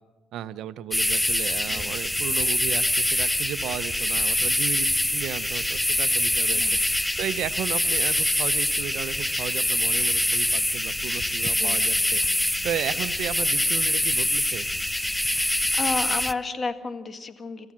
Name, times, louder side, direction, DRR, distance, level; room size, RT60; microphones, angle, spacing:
voice 1, 0.3-6.6 7.0-14.7, right 11 dB, 85° right, 14 dB, 0.7 m, -34 dB
sound 1, 0.9-16.3, left 1 dB, 10° left, 0.6 m, -24 dB
voice 2, 15.3-17.7, left 4 dB, 40° left, 9 dB, 1.7 m, -32 dB
26.5 x 14.5 x 7.5 m, 1.3 s
cardioid pair, 90°, 0 cm